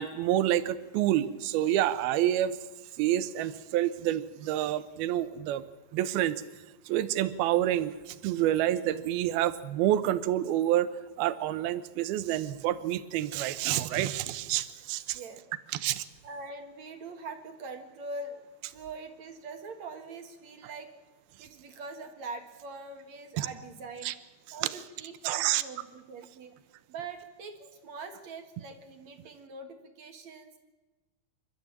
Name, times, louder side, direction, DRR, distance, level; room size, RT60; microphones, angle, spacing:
voice 1, 0.0-2.6 3.0-5.6 5.9-6.4 6.9-10.9 11.2-15.2 15.7-16.0 23.4-23.5 24.1-24.2 25.2-25.6, right 13 dB, 75° right, 13 dB, 2.7 m, -28 dB
voice 2, 16.2-18.4 18.7-20.9 21.4-24.1 24.5-26.5 26.9-30.5, right 3 dB, 55° right, 6 dB, 2.3 m, -43 dB
28.5 x 13.5 x 8.7 m, 1.2 s
omnidirectional pair, 4.9 m